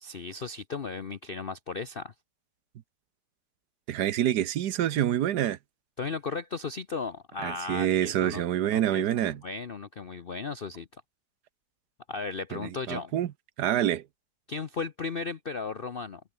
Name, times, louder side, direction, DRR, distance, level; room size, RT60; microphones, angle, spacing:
voice 1, 0.0-2.1 6.0-8.4 8.7-10.9 12.1-13.1 14.5-16.2, left 4 dB, 45° left, 0.7 m, -36 dB
voice 2, 3.9-5.6 7.4-9.4 12.5-13.3 13.6-14.0, right 11 dB, 70° right, 1.4 m, -27 dB
omnidirectional pair, 1.9 m